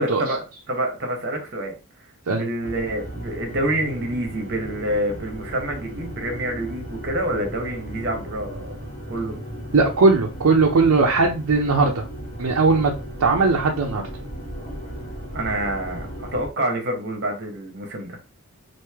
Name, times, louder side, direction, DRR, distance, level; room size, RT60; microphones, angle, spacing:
voice 1, 0.0-1.8 2.3-8.8 9.1-9.4 15.3-18.2, right 1 dB, 50° right, 3 dB, 0.9 m, -27 dB
sound 1, 2.6-16.5, equal, 35° left, 1.4 m, -36 dB
voice 2, 9.7-12.0 12.4-12.9 13.2-14.0, right 3 dB, 80° right, 1 dB, 0.6 m, -18 dB
3.1 x 2.6 x 3.5 m, 0.31 s
head